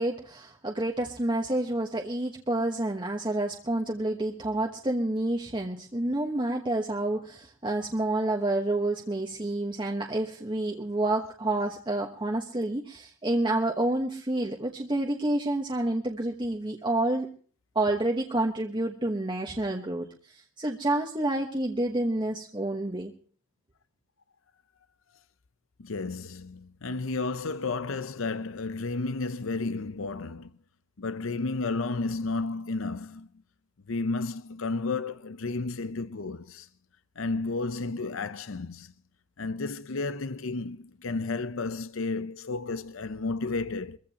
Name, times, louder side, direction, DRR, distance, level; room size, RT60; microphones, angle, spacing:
voice 1, 0.0-17.3 17.7-20.1 20.6-23.1, right 1 dB, 25° right, 1.2 m, -29 dB
voice 2, 25.8-30.5 31.0-33.3 33.9-36.7 37.2-38.9 39.4-44.0, left 3 dB, 80° left, 0.7 m, -32 dB
23.0 x 15.0 x 2.9 m
head